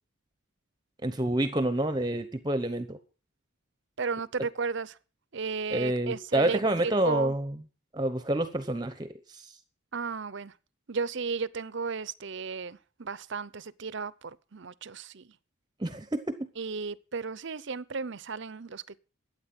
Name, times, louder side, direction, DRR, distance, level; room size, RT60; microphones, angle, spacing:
voice 1, 1.0-3.0 5.7-7.5 7.9-9.6 15.8-16.5, right 1 dB, 20° right, 0.9 m, -28 dB
voice 2, 4.0-5.0 5.3-7.3 9.9-10.5 10.9-15.2 16.6-19.0, right 5 dB, 55° right, 0.7 m, -34 dB
12.5 x 8.8 x 7.5 m
head